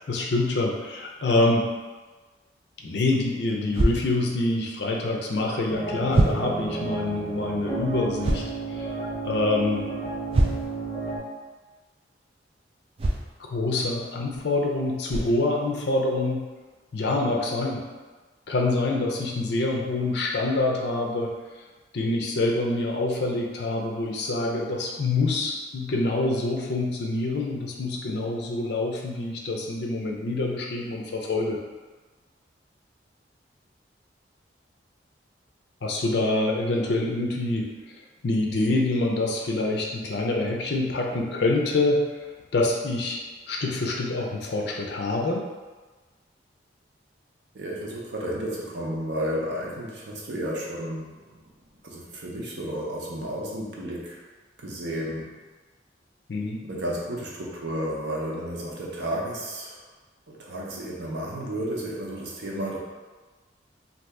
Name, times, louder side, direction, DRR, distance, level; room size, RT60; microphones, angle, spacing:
voice 1, 0.1-1.6 2.8-8.4 8.7-9.0 9.2-9.8 13.5-16.4 16.9-17.8 18.5-21.3 21.9-31.6 35.8-37.9 38.2-42.0 42.5-43.2 43.5-45.4 56.3-56.6, left 2 dB, 65° left, -1 dB, 0.5 m, -26 dB
sound 1, 3.7-3.9 5.4-5.5 6.1-6.4 8.2-8.5 10.3-10.7 13.0-13.2 14.3-14.4 15.1-15.3, right 2 dB, 30° right, 0.3 m, -23 dB
sound 2, 5.7-11.2, right 3 dB, 20° left, 0.9 m, -32 dB
voice 2, 47.5-51.4 51.8-54.2 54.6-55.4 56.7-59.8 60.3-62.8, right 1 dB, 70° right, -3 dB, 0.7 m, -32 dB
2.7 x 2.6 x 3.3 m, 1.3 s
head